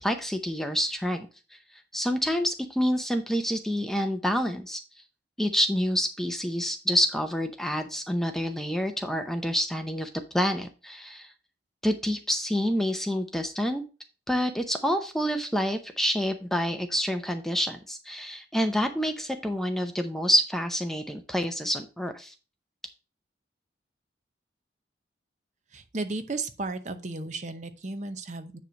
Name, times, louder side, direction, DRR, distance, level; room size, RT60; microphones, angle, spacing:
voice 1, 0.0-1.6 1.9-4.8 5.4-11.3 11.8-13.8 14.3-22.3, equal, ahead, 6 dB, 0.6 m, -28 dB
voice 2, 25.7-28.6, right 3 dB, 40° right, 10 dB, 0.8 m, -34 dB
9.5 x 3.2 x 6.2 m, 0.33 s
head